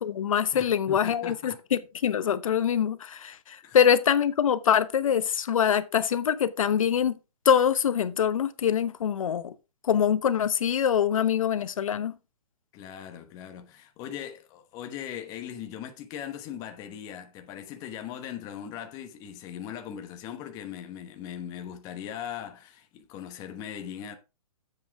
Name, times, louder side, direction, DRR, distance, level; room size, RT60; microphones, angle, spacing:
voice 1, 0.0-7.2 7.4-9.5 9.8-12.1, left 8 dB, 60° left, 1.0 m, -24 dB
voice 2, 0.5-1.6 3.6-3.8 12.7-24.1, left 9 dB, 20° left, 1.1 m, -39 dB
9.5 x 7.7 x 3.6 m
hypercardioid pair, 160°, 19 cm